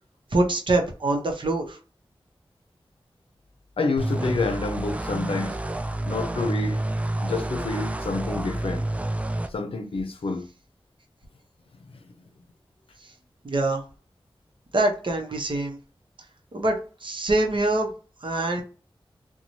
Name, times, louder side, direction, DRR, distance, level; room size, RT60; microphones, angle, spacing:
voice 1, 0.3-1.8 13.4-13.8 14.7-15.8 16.5-17.9 18.2-18.6, right 2 dB, 60° right, 0.8 m, -24 dB
voice 2, 3.8-5.6 6.1-6.8 7.2-8.9 9.5-10.5, left 3 dB, 85° left, 0.5 m, -28 dB
sound 1, 4.0-9.5, right 1 dB, 15° right, 0.3 m, -29 dB
2.9 x 2.3 x 2.6 m
wide cardioid pair, 50°, 9 cm